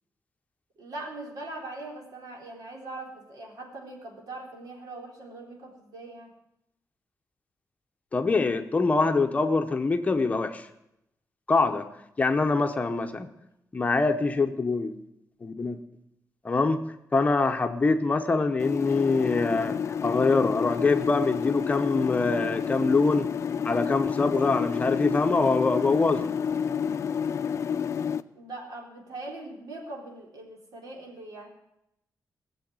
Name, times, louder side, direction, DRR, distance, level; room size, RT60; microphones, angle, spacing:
voice 1, 0.8-6.3 28.4-31.5, right 2 dB, 75° right, 0 dB, 4.0 m, -41 dB
voice 2, 8.1-10.7 11.5-11.9 12.2-13.3 13.7-14.9 15.4-15.8 16.4-16.8 17.1-23.3 23.6-26.3, left 3 dB, 20° left, 6 dB, 0.9 m, -24 dB
sound 1, 18.6-28.2, left 7 dB, 50° left, 0.5 m, -30 dB
19.5 x 7.0 x 9.4 m, 0.83 s
wide cardioid pair, 175°, 6 cm